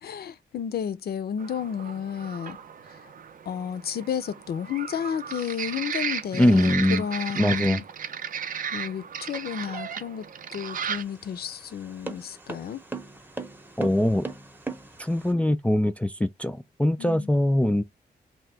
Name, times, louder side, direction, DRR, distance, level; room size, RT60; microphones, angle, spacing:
voice 1, 0.0-2.6 3.0-3.1 3.5-7.8 8.7-12.8 17.0-17.3, left 8 dB, 65° left, 0.5 m, -32 dB
sound 1, 1.4-11.0, right 7 dB, 55° right, 0.5 m, -35 dB
voice 2, 6.3-7.0 7.4-7.8 13.8-14.3 15.0-17.8, left 1 dB, 10° left, 0.3 m, -22 dB
sound 2, 10.6-15.3, right 3 dB, 10° right, 0.7 m, -39 dB
2.9 x 2.2 x 3.3 m
cardioid pair, 65°, 17 cm